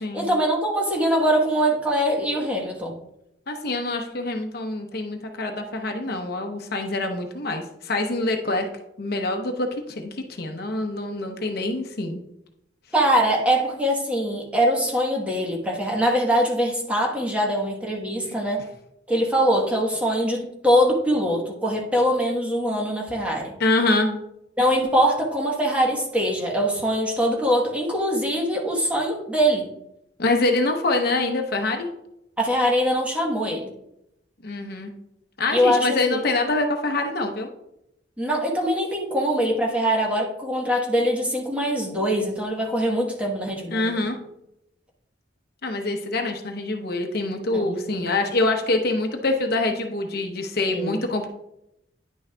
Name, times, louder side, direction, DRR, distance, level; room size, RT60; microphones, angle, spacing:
voice 1, 0.1-2.9 12.9-18.6 19.1-23.5 24.6-29.7 32.4-33.7 35.5-36.2 38.2-44.0 47.5-47.7 48.0-48.1 50.7-51.0, equal, 5° right, -1 dB, 1.1 m, -23 dB
voice 2, 3.5-8.7 9.0-12.2 18.2-18.3 23.6-24.2 30.2-31.9 34.4-34.9 35.4-37.5 43.7-44.2 45.6-51.3, left 2 dB, 55° left, 4 dB, 0.8 m, -25 dB
10.0 x 6.2 x 2.3 m, 0.82 s
head